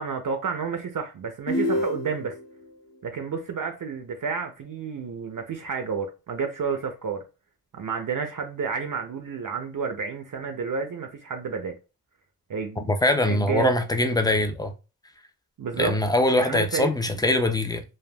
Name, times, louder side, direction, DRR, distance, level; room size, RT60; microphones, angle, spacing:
voice 1, 0.0-2.4 3.0-7.2 7.7-11.8 12.5-12.9 13.2-13.7 15.6-16.0 16.3-17.2, right 6 dB, 60° right, 0.5 m, -30 dB
sound 1, 1.5-2.5, left 1 dB, 45° left, 0.7 m, -27 dB
voice 2, 12.8-14.7 15.8-17.8, left 1 dB, 10° left, 0.3 m, -23 dB
3.3 x 2.2 x 2.2 m
wide cardioid pair, 100°, 37 cm